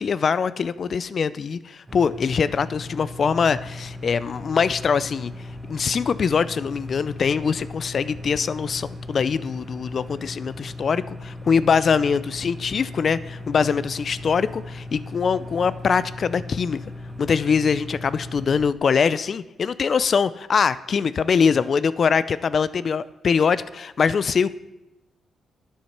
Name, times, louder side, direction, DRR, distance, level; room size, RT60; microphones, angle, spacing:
voice 1, 0.0-16.8 17.2-24.5, left 6 dB, 55° left, 16 dB, 0.4 m, -23 dB
sound 1, 1.9-18.7, left 2 dB, 20° right, 1.3 m, -37 dB
8.8 x 7.2 x 5.8 m, 0.96 s
supercardioid pair, 65°, 0 cm